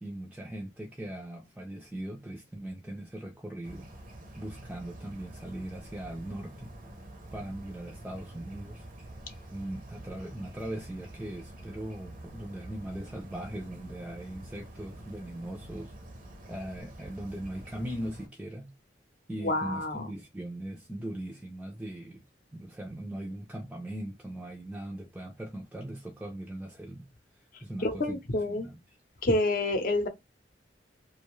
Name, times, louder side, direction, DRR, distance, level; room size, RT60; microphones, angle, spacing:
voice 1, 0.0-3.9 4.4-6.7 7.3-8.8 9.5-15.9 16.5-18.7 19.3-22.2 22.5-27.1 27.4-28.2 28.5-28.8, right 1 dB, 5° right, 0.4 m, -40 dB
sound 1, 3.6-18.3, right 1 dB, 50° right, 0.6 m, -47 dB
voice 2, 19.4-20.1 27.8-28.7 29.2-30.1, left 2 dB, 50° left, 0.7 m, -28 dB
2.5 x 2.2 x 3.0 m
head